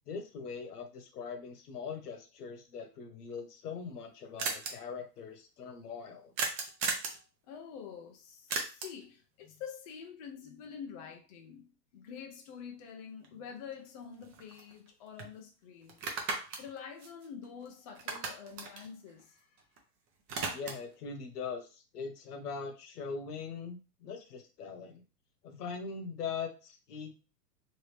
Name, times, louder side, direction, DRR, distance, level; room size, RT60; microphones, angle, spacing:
voice 1, 0.1-6.3 20.5-25.0 25.4-27.3, left 5 dB, 70° left, 1.1 m, -41 dB
sound 1, 3.4-3.5 3.7-3.8 4.0-4.1 4.4-4.7 6.4-7.2 8.5-9.0 13.2-13.3 13.7-14.9 15.2-15.3 15.9-17.7 17.9-19.8 20.1-20.9, right 4 dB, 25° right, 0.7 m, -37 dB
voice 2, 7.4-16.0 16.6-19.7, left 7 dB, 25° left, 0.3 m, -47 dB
3.2 x 2.7 x 3.2 m
hypercardioid pair, 125°, 49 cm